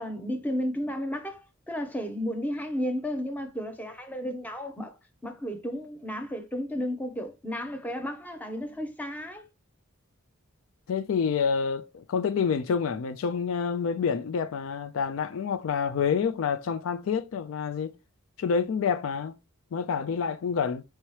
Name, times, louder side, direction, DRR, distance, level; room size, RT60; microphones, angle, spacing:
voice 1, 0.0-4.9 5.2-9.4, equal, 5° left, 0.7 m, -33 dB
voice 2, 10.9-17.9 18.4-19.4 19.7-20.8, left 6 dB, 65° left, 0.4 m, -28 dB
4.6 x 2.9 x 3.1 m
head